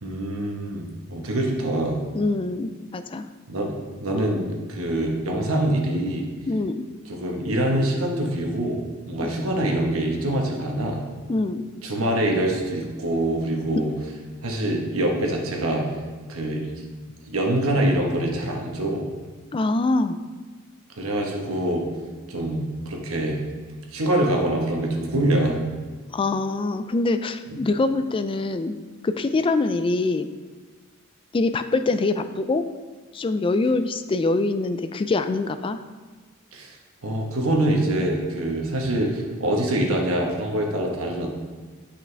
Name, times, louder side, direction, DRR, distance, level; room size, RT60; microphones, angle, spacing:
voice 1, 0.0-2.0 3.5-6.3 7.1-8.8 9.1-11.0 11.8-13.9 14.4-15.8 16.3-16.7 17.3-19.0 21.0-21.8 22.3-23.4 23.9-25.6 27.5-27.6 36.5-36.8 37.0-41.3, right 1 dB, 75° right, 0 dB, 1.2 m, -24 dB
voice 2, 2.1-3.2 6.5-6.9 11.3-11.6 19.5-20.2 26.1-28.8 29.0-30.3 31.3-32.7 33.1-35.8, left 3 dB, 25° left, 10 dB, 0.3 m, -24 dB
8.4 x 5.8 x 3.4 m, 1.4 s
head